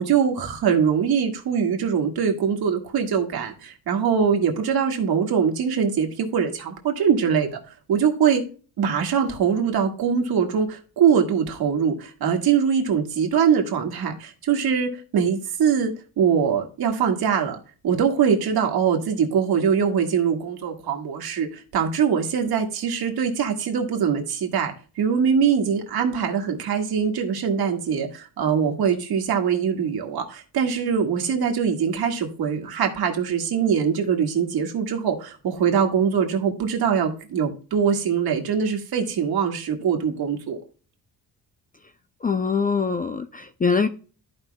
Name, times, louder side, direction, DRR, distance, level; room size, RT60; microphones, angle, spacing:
voice 1, 0.0-7.6 7.9-8.4 8.8-17.6 17.8-40.6, right 7 dB, 65° right, 1.8 m, -22 dB
voice 2, 42.2-43.9, left 5 dB, 25° left, 0.4 m, -23 dB
14.0 x 5.3 x 2.2 m
cardioid pair, 140°, 40 cm